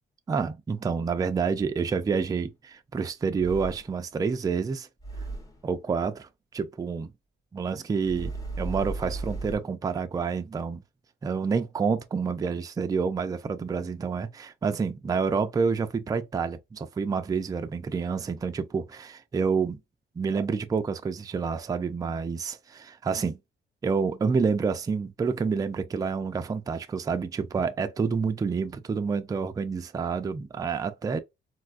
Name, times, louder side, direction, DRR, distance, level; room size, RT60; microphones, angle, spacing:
voice 1, 0.3-4.9 5.6-7.1 7.5-8.3 8.6-10.8 11.2-19.8 20.2-23.4 23.8-31.2, right 5 dB, 20° right, 0.3 m, -28 dB
sound 1, 3.4-4.1 5.0-5.6 8.0-9.6, right 3 dB, 15° left, 0.8 m, -35 dB
4.0 x 2.2 x 2.4 m
cardioid pair, 120°, 20 cm